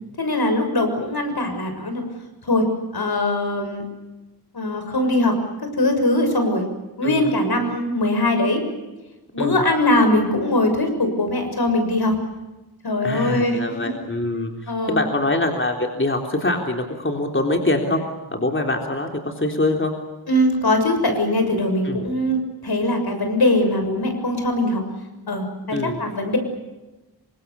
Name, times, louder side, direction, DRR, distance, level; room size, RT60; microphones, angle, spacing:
voice 1, 0.2-2.0 2.4-2.6 2.9-3.8 4.5-5.3 5.8-6.6 7.0-8.6 9.3-12.1 12.8-13.6 14.7-15.0 20.3-24.8 25.3-26.4, left 1 dB, 70° left, 6 dB, 6.8 m, -21 dB
voice 2, 13.0-18.0 18.3-19.9 21.8-22.1 25.7-26.0, left 2 dB, 30° left, 3 dB, 3.6 m, -24 dB
28.5 x 25.0 x 7.0 m, 1.1 s
wide cardioid pair, 85°, 39 cm